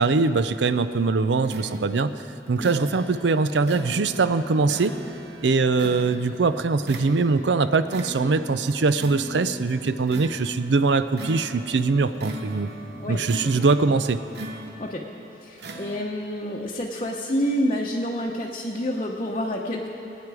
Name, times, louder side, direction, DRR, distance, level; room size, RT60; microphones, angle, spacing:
voice 1, 0.0-2.1 2.5-4.9 5.4-12.7 13.1-14.2, right 4 dB, 90° right, 12 dB, 0.5 m, -22 dB
sound 1, 1.3-15.1 15.6-16.0, equal, 70° right, 0.9 m, -39 dB
voice 2, 12.9-13.5 14.8-15.1 15.4-19.9, equal, 35° left, -2 dB, 0.8 m, -28 dB
21.5 x 9.2 x 4.8 m, 3.0 s
head